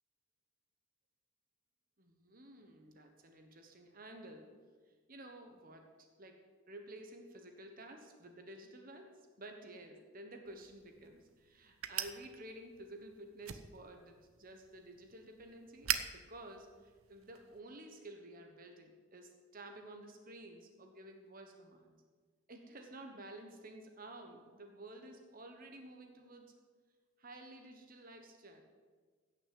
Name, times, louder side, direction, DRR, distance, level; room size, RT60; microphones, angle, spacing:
voice 1, 2.0-4.5 4.9-6.4 6.7-22.0 22.5-26.6 27.2-28.6, right 1 dB, 40° right, 4 dB, 1.2 m, -52 dB
sound 1, 10.4-17.6, right 10 dB, 80° right, 0.8 m, -44 dB
16.0 x 6.5 x 7.7 m, 1.5 s
head